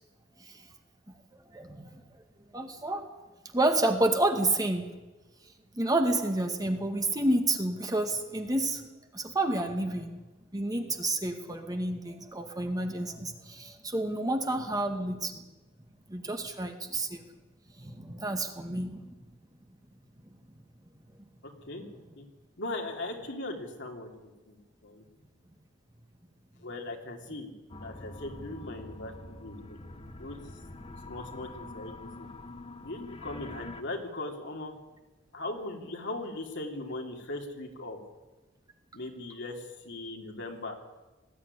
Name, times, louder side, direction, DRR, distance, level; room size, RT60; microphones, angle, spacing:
voice 1, 1.5-2.0 2.5-3.1 3.4-4.8 5.7-8.8 9.1-10.2 10.5-15.4 16.1-17.2 17.8-19.0, right 2 dB, 20° right, 4 dB, 2.0 m, -29 dB
voice 2, 21.4-21.8 22.1-22.2 22.6-24.6 24.8-25.0 26.6-27.5 27.8-29.8 30.2-30.4 31.0-32.3 32.8-34.7 35.3-38.0 38.9-40.8, left 2 dB, 60° left, 2 dB, 3.1 m, -39 dB
sound 1, 27.7-33.8, left 2 dB, 30° left, 1.2 m, -45 dB
19.5 x 14.5 x 9.9 m, 1.1 s
head